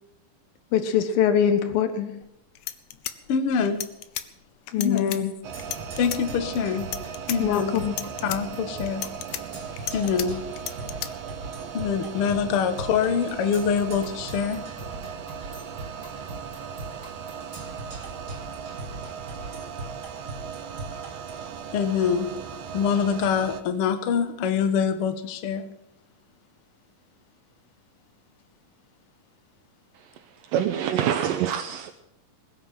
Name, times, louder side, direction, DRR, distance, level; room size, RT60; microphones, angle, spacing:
voice 1, 0.7-2.1 4.7-5.3 7.4-8.0, left 8 dB, 90° left, 10 dB, 3.1 m, -23 dB
sound 1, 2.2-2.3 2.6-4.3 4.7-5.2 5.6-6.2 6.7-7.4 7.8-8.4 8.9-10.3 10.6-11.1, left 12 dB, 70° left, 1.9 m, -33 dB
voice 2, 3.3-3.8 4.7-5.3 6.0-6.9 7.3-7.9 8.2-9.1 9.9-10.4 11.7-14.6 21.7-22.3 22.7-25.7, left 6 dB, 55° left, 9 dB, 1.7 m, -25 dB
sound 2, 5.4-23.6, right 7 dB, 65° right, 1.8 m, -38 dB
Percussion, 5.5-21.5, right 2 dB, 35° right, 4.4 m, -41 dB
voice 3, 30.5-31.9, right 10 dB, 80° right, 6 dB, 2.5 m, -25 dB
21.0 x 9.2 x 7.5 m, 0.81 s
omnidirectional pair, 4.0 m